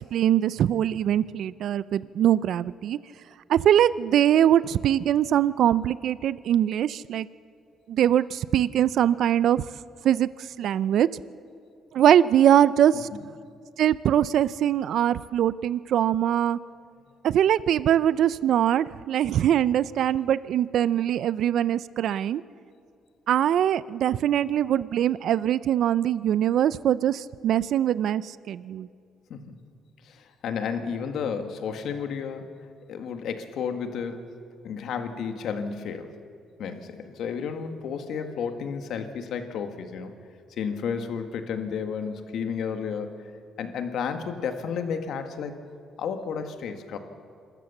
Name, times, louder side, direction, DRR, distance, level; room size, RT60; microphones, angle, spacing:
voice 1, 0.0-3.0 3.5-7.3 7.9-9.6 10.0-11.1 11.9-13.1 13.8-16.6 17.2-22.4 23.3-28.9, right 10 dB, 70° right, 17 dB, 0.4 m, -22 dB
voice 2, 30.0-32.5 32.9-34.3 34.6-36.2 36.6-40.2 40.5-43.2 43.6-45.6 46.0-47.0, left 6 dB, 75° left, 7 dB, 1.7 m, -32 dB
26.5 x 13.5 x 7.2 m, 2.4 s
cardioid pair, 90°, 0 cm